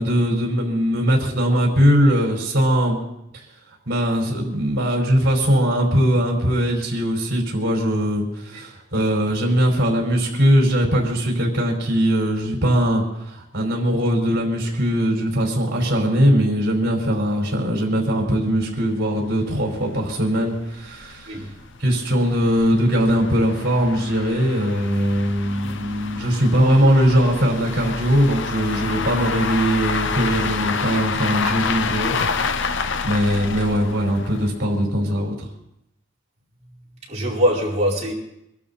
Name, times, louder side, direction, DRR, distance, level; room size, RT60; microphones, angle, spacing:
voice 1, 0.0-3.0 3.3-3.4 3.9-21.4 21.8-32.8 33.0-35.5, equal, 55° right, -1 dB, 4.7 m, -20 dB
sound 1, 18.3-18.4 18.6-18.7 19.2-19.3 19.6-19.7 20.3-34.7, left 5 dB, 65° left, 0.8 m, -28 dB
voice 2, 21.3-21.6 30.9-31.0 37.1-38.1, equal, 35° right, -5 dB, 4.8 m, -23 dB
24.5 x 12.0 x 4.2 m, 0.80 s
head